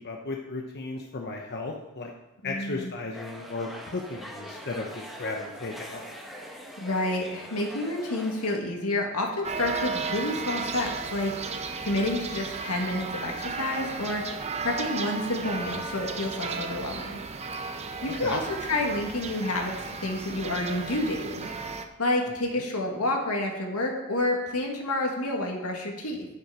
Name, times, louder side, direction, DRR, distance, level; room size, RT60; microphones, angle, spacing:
voice 1, 0.0-2.1 2.4-6.0 18.2-18.4, left 3 dB, 50° left, 1 dB, 0.9 m, -35 dB
voice 2, 2.4-2.9 6.8-17.1 17.6-17.7 18.0-19.8 20.0-21.5 22.0-26.3, left 1 dB, 80° left, 1 dB, 2.0 m, -29 dB
sound 1, 3.1-8.6, equal, ahead, 1.2 m, -43 dB
sound 2, 9.4-21.9, right 4 dB, 30° right, 0.7 m, -34 dB
9.7 x 8.0 x 4.9 m, 0.99 s
head